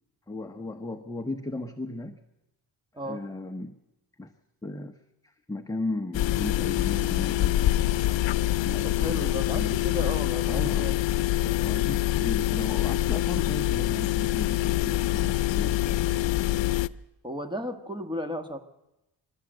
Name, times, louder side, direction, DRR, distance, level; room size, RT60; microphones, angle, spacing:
voice 1, 0.3-2.2 3.0-3.8 4.2-4.3 4.6-5.0 5.2-7.8 8.6-9.8 10.5-10.9 11.5-16.6, left 2 dB, 10° left, 4 dB, 0.9 m, -36 dB
sound 1, 6.1-16.9, left 15 dB, 85° left, 0.7 m, -25 dB
voice 2, 8.8-11.0 11.4-11.7 17.2-18.6, left 1 dB, 10° right, 7 dB, 1.4 m, -34 dB
27.0 x 13.0 x 7.8 m, 0.93 s
wide cardioid pair, 145°, 43 cm